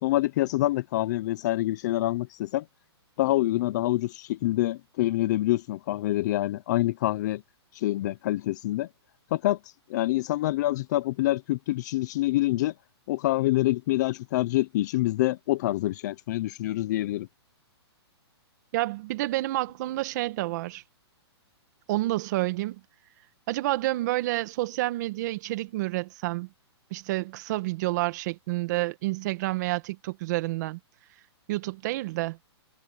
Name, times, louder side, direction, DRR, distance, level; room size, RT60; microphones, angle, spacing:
voice 1, 0.0-2.6 3.2-7.4 7.7-8.9 9.3-9.6 9.9-12.7 13.1-17.3, left 16 dB, 40° left, 0.6 m, -26 dB
voice 2, 18.7-20.8 21.9-22.8 23.5-26.5 26.9-30.8 31.5-32.4, right 18 dB, 40° right, 1.7 m, -29 dB
hypercardioid pair, 155°, 14 cm